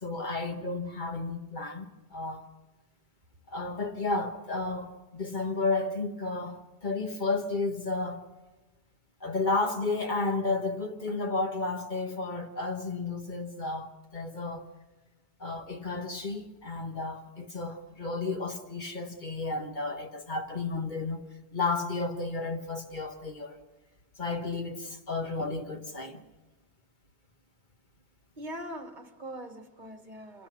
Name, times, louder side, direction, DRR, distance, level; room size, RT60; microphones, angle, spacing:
voice 1, 0.0-2.4 3.5-8.3 9.2-14.7 15.4-21.3 21.5-23.6 24.2-26.2, left 3 dB, 45° left, 1.4 m, -32 dB
voice 2, 28.4-30.5, equal, 45° right, 1.4 m, -42 dB
26.5 x 17.0 x 6.0 m
omnidirectional pair, 1.2 m